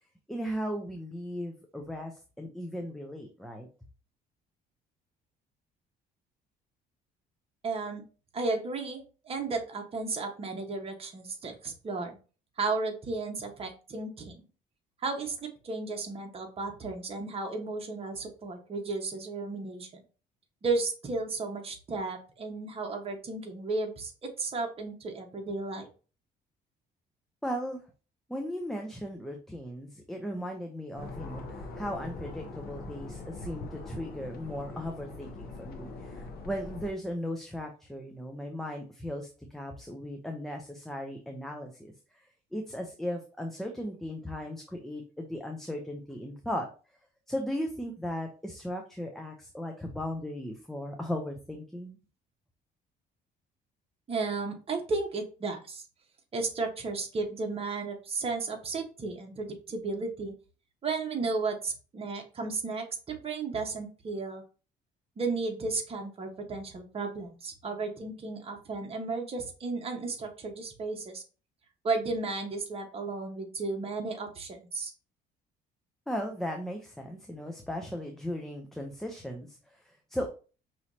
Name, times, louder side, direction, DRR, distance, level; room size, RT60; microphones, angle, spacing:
voice 1, 0.3-3.7 27.4-27.8 28.3-46.7 47.3-52.0 76.1-80.3, equal, ahead, 2 dB, 0.6 m, -37 dB
voice 2, 7.6-8.0 8.3-12.1 12.6-14.4 15.0-19.9 20.6-25.9 54.1-55.8 56.3-60.3 60.8-64.4 65.2-71.2 71.8-74.9, right 3 dB, 35° right, 2 dB, 1.3 m, -34 dB
sound 1, 31.0-36.9, left 3 dB, 65° left, 1.0 m, -42 dB
5.5 x 3.1 x 2.8 m, 0.35 s
cardioid pair, 110°, 17 cm